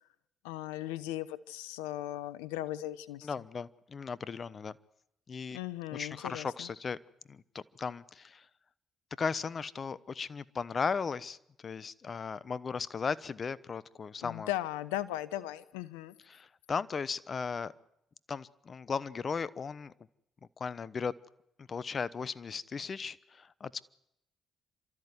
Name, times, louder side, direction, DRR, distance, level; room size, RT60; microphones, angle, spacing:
voice 1, 0.4-3.3 5.5-6.7 14.2-16.1, left 14 dB, 90° left, 17 dB, 0.8 m, -37 dB
voice 2, 3.2-4.7 5.3-5.6 5.9-7.0 7.3-8.4 9.2-11.4 11.6-14.5 16.3-17.7 18.3-19.9 20.6-21.1 21.6-23.8, left 5 dB, 45° left, 19 dB, 1.0 m, -36 dB
29.0 x 13.5 x 9.6 m, 0.81 s
hypercardioid pair, 50°, 0 cm